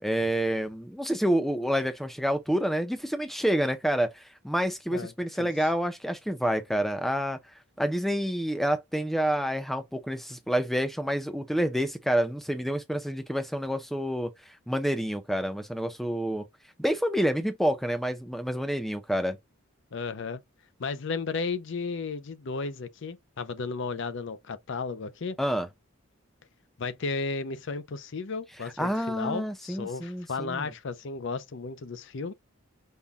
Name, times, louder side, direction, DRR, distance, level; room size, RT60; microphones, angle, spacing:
voice 1, 0.0-7.4 7.8-14.3 14.7-16.4 16.8-19.4 25.4-25.7 28.8-30.7, equal, ahead, 0.5 m, -28 dB
voice 2, 19.9-20.4 20.8-25.4 26.8-32.3, left 4 dB, 55° left, 0.5 m, -34 dB
5.5 x 2.3 x 3.5 m
head